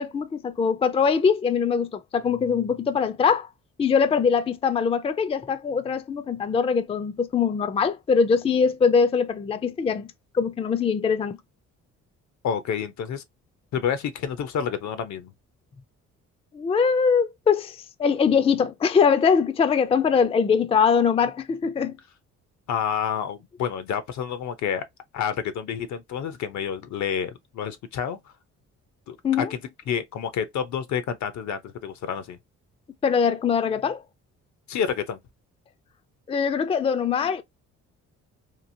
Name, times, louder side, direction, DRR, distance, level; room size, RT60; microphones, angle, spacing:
voice 1, 0.0-3.5 3.8-10.1 10.3-11.4 16.5-22.0 29.2-29.5 33.0-34.0 36.3-37.4, left 6 dB, 20° left, 0.4 m, -22 dB
voice 2, 12.4-13.2 13.7-15.3 22.7-24.8 25.1-28.2 29.1-29.6 29.9-32.4 34.7-35.2, left 7 dB, 70° left, 0.7 m, -29 dB
2.9 x 2.4 x 2.6 m
cardioid pair, 90°, 30 cm